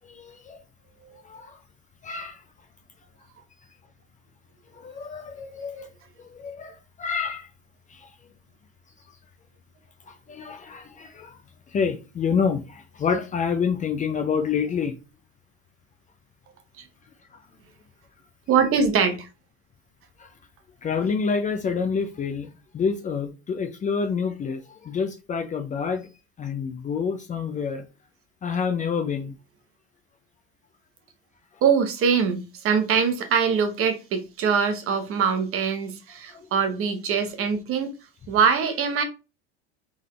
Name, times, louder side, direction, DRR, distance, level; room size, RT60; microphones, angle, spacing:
voice 1, 0.1-0.6 1.2-1.6 2.0-2.4 4.8-5.9 6.3-7.5 7.9-8.1 10.1-11.3 11.7-14.9 20.2-20.3 20.8-22.5 22.7-26.1 26.4-27.8 28.4-29.3 36.3-36.5, left 6 dB, 20° left, 0.6 m, -28 dB
voice 2, 18.5-19.3 31.6-37.9 38.3-39.0, right 6 dB, 40° right, 1.0 m, -23 dB
3.8 x 3.6 x 3.2 m
hypercardioid pair, 100°, 35 cm